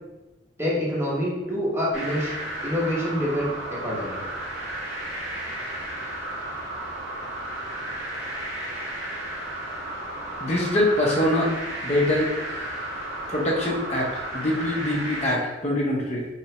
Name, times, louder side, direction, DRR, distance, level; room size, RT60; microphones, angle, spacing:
voice 1, 0.6-2.3 2.6-4.2, equal, 15° right, -5 dB, 0.9 m, -26 dB
sound 1, 1.9-15.3, right 1 dB, 70° right, 1.5 m, -33 dB
voice 2, 10.4-11.5 11.8-12.7 13.3-16.3, left 1 dB, 35° left, -4 dB, 0.7 m, -24 dB
4.3 x 3.2 x 2.9 m, 1.1 s
head